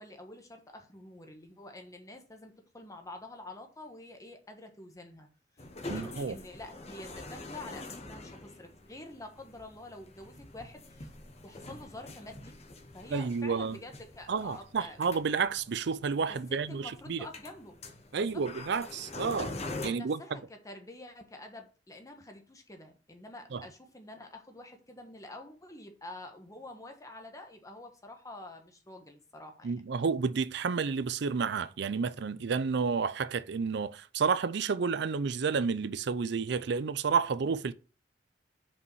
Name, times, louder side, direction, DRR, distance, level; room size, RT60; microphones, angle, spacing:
voice 1, 0.0-5.3 5.5-11.1 11.4-12.6 12.9-15.0 16.3-17.8 18.1-18.4 19.8-29.7, left 1 dB, 20° left, 1.2 m, -48 dB
sound 1, 5.6-19.9, left 2 dB, 35° left, 1.1 m, -45 dB
voice 2, 5.9-6.4 13.1-13.8 14.3-17.3 18.1-19.6 19.8-20.2 23.5-23.6 29.6-37.7, right 5 dB, 65° right, 0.5 m, -30 dB
5.6 x 5.2 x 4.6 m
head